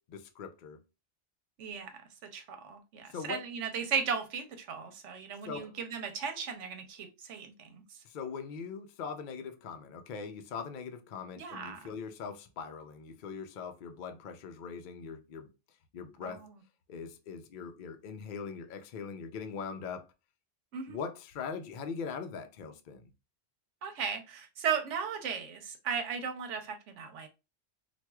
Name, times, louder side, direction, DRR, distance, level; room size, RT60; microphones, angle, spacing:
voice 1, 0.1-0.8 3.1-3.4 5.5-5.8 8.0-15.5 15.9-16.4 16.9-20.1 20.9-23.1, left 6 dB, 60° left, 0.5 m, -41 dB
voice 2, 1.6-1.9 2.3-7.8 11.4-11.9 16.2-16.3 20.7-21.0 23.8-27.3, right 6 dB, 80° right, 1.1 m, -36 dB
4.3 x 2.3 x 2.3 m
omnidirectional pair, 1.2 m